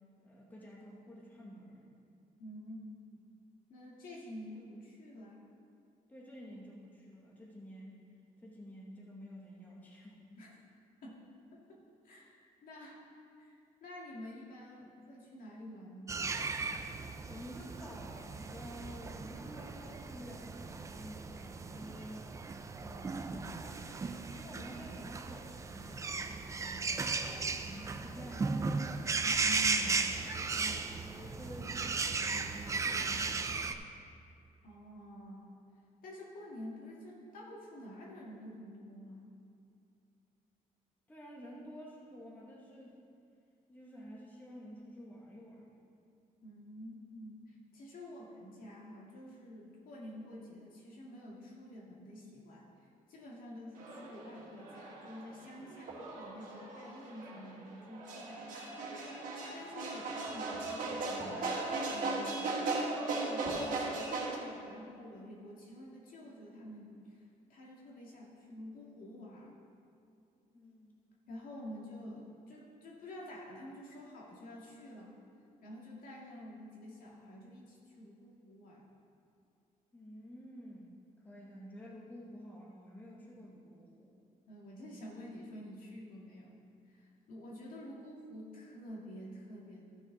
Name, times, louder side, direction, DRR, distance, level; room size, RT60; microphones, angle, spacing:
voice 1, 0.2-1.9 6.1-8.0 8.4-10.2 17.3-22.3 22.8-23.9 24.3-27.0 27.6-28.5 30.4-33.9 41.1-42.9 43.7-45.8 70.5-70.9 79.9-80.9 81.2-84.1, equal, 10° left, -4 dB, 1.1 m, -50 dB
voice 2, 2.4-2.8 3.0-3.2 3.7-5.5 10.4-10.5 11.0-11.2 11.5-12.3 12.6-13.0 13.4-16.6 29.2-30.1 34.6-35.6 36.0-39.3 46.4-58.8 59.5-61.5 61.9-62.5 62.9-69.6 71.3-75.2 75.6-78.9 84.5-86.6 86.9-89.8, equal, 70° left, -3 dB, 2.1 m, -49 dB
sound 1, 16.1-33.7, right 4 dB, 20° right, 0.4 m, -36 dB
sound 2, 53.8-64.4, right 3 dB, 60° right, 1.8 m, -38 dB
14.5 x 6.1 x 3.9 m, 2.5 s
cardioid pair, 170°, 15 cm